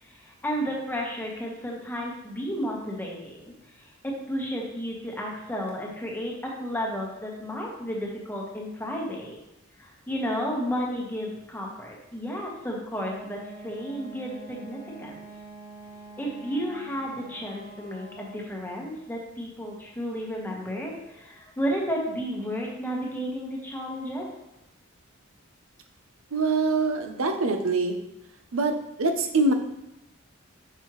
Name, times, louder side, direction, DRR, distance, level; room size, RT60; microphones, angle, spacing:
voice 1, 0.1-9.4 9.8-15.2 16.2-24.3, equal, 10° left, -2 dB, 1.2 m, -32 dB
Wind instrument woodwind instrument, 12.9-18.6, right 3 dB, 45° right, 1.2 m, -46 dB
voice 2, 26.3-28.0 28.5-29.5, right 3 dB, 80° right, 6 dB, 0.7 m, -24 dB
6.0 x 5.4 x 3.1 m, 0.91 s
head